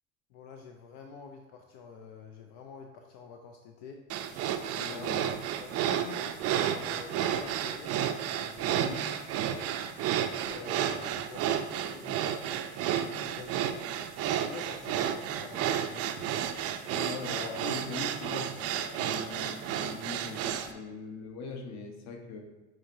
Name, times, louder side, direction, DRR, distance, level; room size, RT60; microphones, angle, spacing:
voice 1, 0.3-4.0 4.7-5.1 5.6-7.9 8.4-9.0 9.5-9.7 10.5-13.8 14.2-16.3, left 5 dB, 75° left, 3 dB, 0.5 m, -47 dB
sound 1, 4.1-20.7, right 10 dB, 45° right, 0.4 m, -32 dB
voice 2, 4.9-5.3 8.8-9.0 16.9-22.4, left 4 dB, 50° left, 3 dB, 0.9 m, -41 dB
6.2 x 3.0 x 2.6 m, 1.2 s
supercardioid pair, 90°, 34 cm